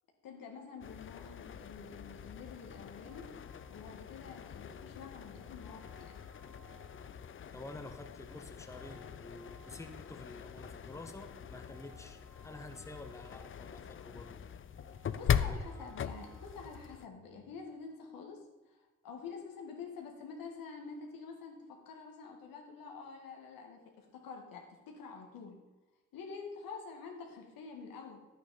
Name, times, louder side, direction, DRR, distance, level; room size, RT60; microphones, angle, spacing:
voice 1, 0.2-3.3 3.7-6.2 15.1-25.6 26.1-28.2, left 5 dB, 80° left, 1 dB, 1.9 m, -48 dB
sound 1, 0.8-17.1, left 8 dB, 40° left, 0.5 m, -41 dB
sound 2, 3.0-17.8, right 2 dB, 60° right, 2.3 m, -63 dB
voice 2, 7.5-14.4 15.3-15.9, left 2 dB, 10° left, 5 dB, 1.0 m, -49 dB
10.0 x 8.5 x 4.0 m, 1.1 s
supercardioid pair, 65°, 34 cm